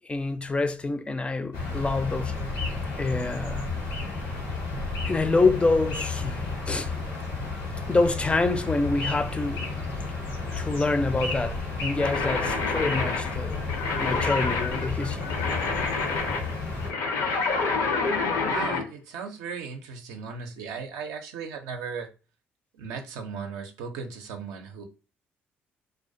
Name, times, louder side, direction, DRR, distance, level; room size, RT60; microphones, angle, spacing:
voice 1, 0.1-2.4 3.0-3.7 5.1-6.9 7.9-9.7 10.5-13.7 14.0-15.3, left 3 dB, 20° left, 0.4 m, -26 dB
sound 1, 1.5-16.9, left 3 dB, 90° left, 1.1 m, -32 dB
sound 2, 12.0-18.9, left 4 dB, 70° left, 0.5 m, -28 dB
voice 2, 18.4-22.1 22.7-24.8, right 5 dB, 75° right, 0.4 m, -36 dB
2.3 x 2.1 x 2.5 m
hypercardioid pair, 55°, 6 cm